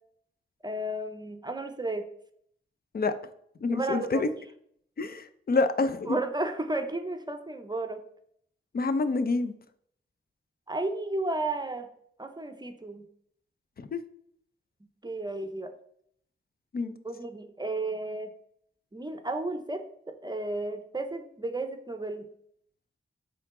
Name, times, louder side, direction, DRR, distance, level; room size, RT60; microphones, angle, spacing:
voice 1, 0.6-2.0 3.7-4.3 6.0-8.0 10.7-11.9 12.2-13.1 15.0-15.7 17.0-18.3 18.9-22.3, right 2 dB, 20° right, 7 dB, 0.6 m, -33 dB
voice 2, 3.6-4.3 5.0-6.2 8.7-9.6 13.8-14.0 16.7-16.9, left 3 dB, 50° left, 11 dB, 0.6 m, -27 dB
9.2 x 3.8 x 3.7 m, 0.68 s
wide cardioid pair, 130°, 21 cm